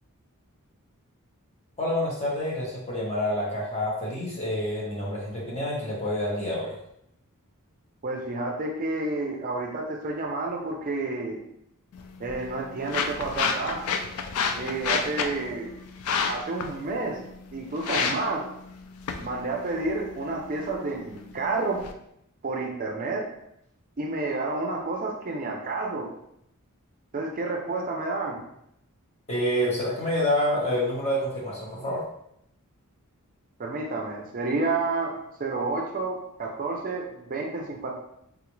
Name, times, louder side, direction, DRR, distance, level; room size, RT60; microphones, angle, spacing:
voice 1, 1.8-6.7 29.3-32.0, left 1 dB, 30° left, -5 dB, 1.0 m, -27 dB
voice 2, 8.0-11.4 12.2-13.9 14.5-15.8 16.3-17.2 17.5-18.4 19.2-21.9 22.4-23.2 24.0-26.1 27.1-28.4 33.6-35.1 35.4-37.9, right 3 dB, 40° right, 0 dB, 0.4 m, -30 dB
sound 1, 11.9-21.9, left 5 dB, 70° left, 0.4 m, -32 dB
3.6 x 2.4 x 3.0 m, 0.76 s
head